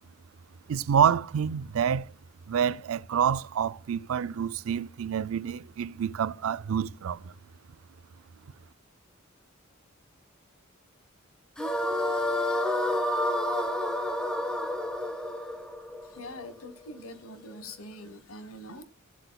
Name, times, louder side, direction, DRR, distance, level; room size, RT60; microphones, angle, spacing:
voice 1, 0.7-2.1 2.5-7.3, right 8 dB, 75° right, 0.4 m, -27 dB
sound 1, 11.6-16.8, left 1 dB, 5° left, 1.2 m, -29 dB
voice 2, 16.1-18.8, left 1 dB, 90° left, 1.2 m, -44 dB
15.0 x 7.9 x 2.2 m
head